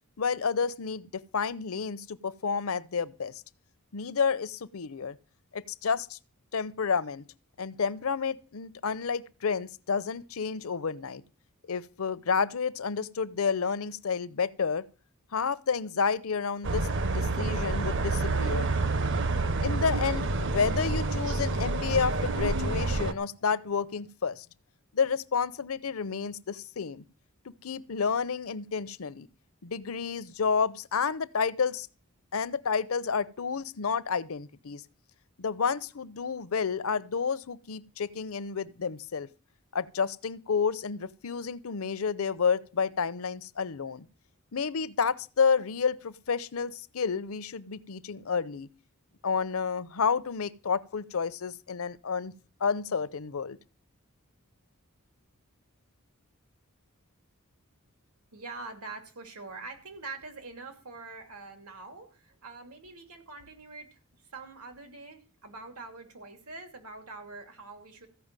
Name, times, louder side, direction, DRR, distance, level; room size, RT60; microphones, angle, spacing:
voice 1, 0.2-3.4 3.9-5.2 5.5-6.2 6.5-7.2 7.6-11.2 11.7-14.8 15.3-18.7 19.6-24.5 24.9-27.0 27.6-29.3 29.6-31.9 32.3-34.8 35.4-39.3 39.7-44.1 44.5-48.7 49.2-52.3 52.6-53.6, left 5 dB, 70° left, 0.7 m, -30 dB
sound 1, 16.6-23.1, right 3 dB, 55° right, 0.8 m, -28 dB
voice 2, 58.3-64.0 64.3-68.1, right 3 dB, 90° right, 3.0 m, -44 dB
14.5 x 5.8 x 8.9 m
head